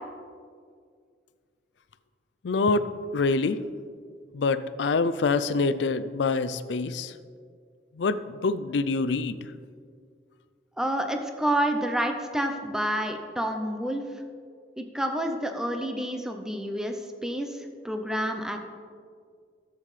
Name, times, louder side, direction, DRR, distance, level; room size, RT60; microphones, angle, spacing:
voice 1, 2.4-2.9 3.1-3.6 4.3-7.1 8.0-9.4, left 3 dB, 85° left, 13 dB, 0.4 m, -25 dB
voice 2, 10.8-14.0 14.8-17.0 17.2-17.5 17.8-18.6, right 1 dB, 5° right, 5 dB, 0.6 m, -28 dB
13.5 x 7.4 x 3.3 m, 2.1 s
head